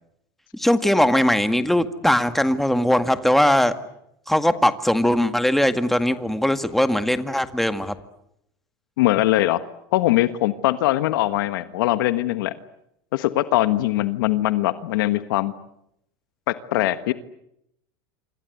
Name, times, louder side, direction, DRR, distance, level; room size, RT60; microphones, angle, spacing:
voice 1, 0.5-3.7 4.3-8.0, left 1 dB, ahead, 10 dB, 1.9 m, -20 dB
voice 2, 9.0-9.6 9.9-12.5 13.1-15.5 16.5-17.1, left 16 dB, 75° left, 12 dB, 1.4 m, -21 dB
27.5 x 26.5 x 8.0 m, 0.78 s
supercardioid pair, 115°, 11 cm